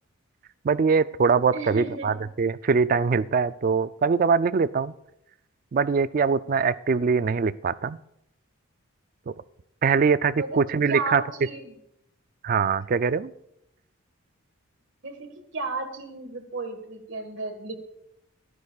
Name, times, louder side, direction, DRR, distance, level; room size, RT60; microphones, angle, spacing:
voice 1, 0.6-4.9 5.7-8.0 9.3-9.4 9.8-11.2 12.4-13.3, right 5 dB, 40° right, 16 dB, 0.3 m, -23 dB
voice 2, 1.5-2.2 10.4-10.6 10.9-11.7 15.0-17.8, right 3 dB, 60° right, 6 dB, 1.6 m, -34 dB
26.5 x 9.7 x 2.4 m, 0.82 s
head